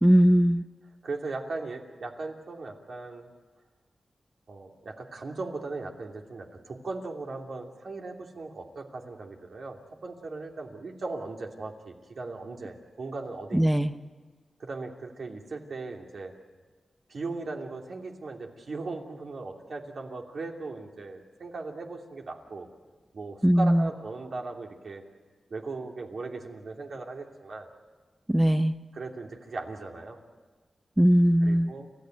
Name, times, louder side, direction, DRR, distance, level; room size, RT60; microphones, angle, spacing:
voice 1, 0.0-0.6 13.5-13.9 23.4-23.9 28.3-28.8 31.0-31.7, equal, 10° right, 9 dB, 0.8 m, -20 dB
voice 2, 1.0-3.3 4.5-13.6 14.6-16.3 17.1-22.7 23.1-25.0 25.5-27.7 28.9-30.2 31.4-31.9, right 3 dB, 70° right, 1 dB, 3.0 m, -38 dB
29.5 x 14.5 x 9.2 m, 1.4 s
wide cardioid pair, 75°, 0 cm